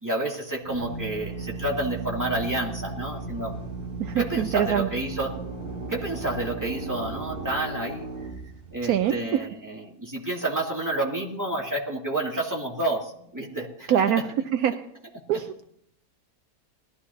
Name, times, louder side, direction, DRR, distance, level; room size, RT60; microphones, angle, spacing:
voice 1, 0.0-3.6 4.2-5.3 5.9-8.1 8.7-14.0, right 2 dB, 10° right, -3 dB, 2.5 m, -29 dB
Drill, 0.6-9.2, right 3 dB, 40° right, 2.1 m, -36 dB
voice 2, 4.0-4.9 8.8-9.5 13.9-14.2 14.5-14.8 15.3-15.6, right 10 dB, 75° right, 8 dB, 1.1 m, -24 dB
20.0 x 13.0 x 2.8 m, 0.71 s
omnidirectional pair, 1.7 m